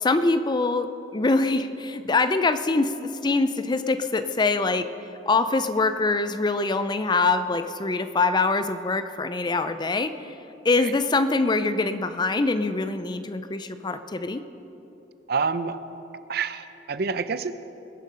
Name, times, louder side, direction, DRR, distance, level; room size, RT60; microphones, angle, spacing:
voice 1, 0.0-4.9 5.3-10.1 10.6-14.4, left 3 dB, 25° left, 10 dB, 0.4 m, -24 dB
voice 2, 15.3-15.8 16.3-17.5, right 5 dB, 55° right, 13 dB, 0.5 m, -27 dB
21.0 x 7.7 x 5.5 m, 3.0 s
head